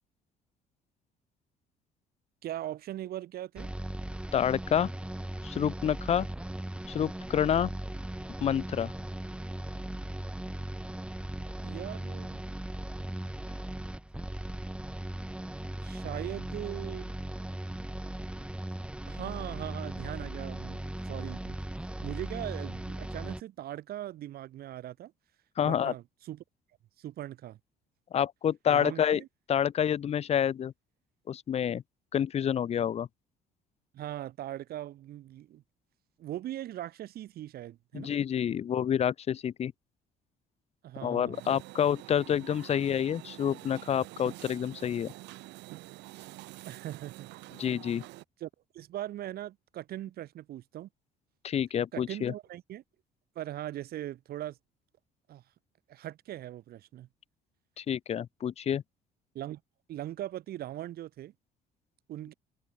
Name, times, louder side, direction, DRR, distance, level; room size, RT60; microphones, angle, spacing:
voice 1, 2.4-3.7 11.6-12.4 15.8-17.1 19.1-21.6 22.0-25.1 25.6-26.4 27.0-27.6 28.7-29.3 33.9-35.6 36.2-38.1 40.8-41.5 46.6-47.3 48.4-50.9 51.9-52.8 53.4-54.6 55.3-55.4 55.9-57.1 59.3-59.6 59.9-61.3 62.1-62.3, right 13 dB, 55° right, 0.7 m, -40 dB
sound 1, 3.6-23.4, right 1 dB, 5° right, 1.1 m, -38 dB
voice 2, 4.3-4.9 5.4-6.3 6.9-7.7 8.4-8.9 25.6-25.9 28.1-29.2 29.5-30.7 31.3-31.8 32.1-33.1 37.9-39.7 41.0-45.1 47.6-48.0 51.4-52.3 57.8-58.8, left 9 dB, 35° left, 0.4 m, -28 dB
sound 2, 41.3-48.2, right 20 dB, 70° right, 2.8 m, -47 dB
hypercardioid pair, 55°, 19 cm